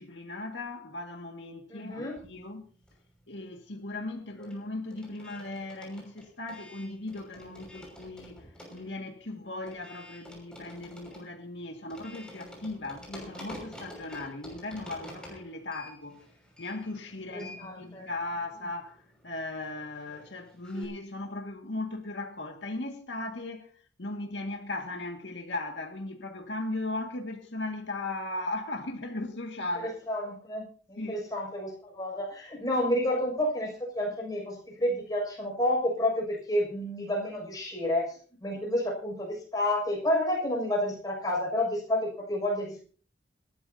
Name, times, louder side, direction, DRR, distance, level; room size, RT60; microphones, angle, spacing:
voice 1, 0.0-2.7 3.3-16.2 16.6-29.9 31.0-31.3, left 2 dB, 75° left, 2.0 m, -37 dB
voice 2, 1.7-2.2 17.3-18.1 30.1-42.8, left 1 dB, 20° left, 6.6 m, -30 dB
sound 1, 2.0-3.3 3.5-20.9, left 1 dB, 5° left, 6.1 m, -49 dB
27.0 x 12.5 x 2.8 m
head